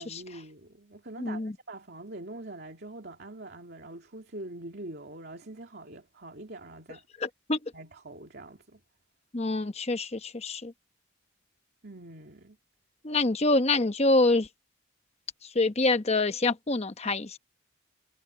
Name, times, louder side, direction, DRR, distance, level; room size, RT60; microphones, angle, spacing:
voice 1, 0.0-7.0 7.7-8.8 11.8-12.6, right 2 dB, 50° right, 2.8 m, -44 dB
voice 2, 1.2-1.5 7.2-7.6 9.3-10.7 13.0-14.5 15.4-17.4, left 2 dB, 30° left, 0.9 m, -26 dB
head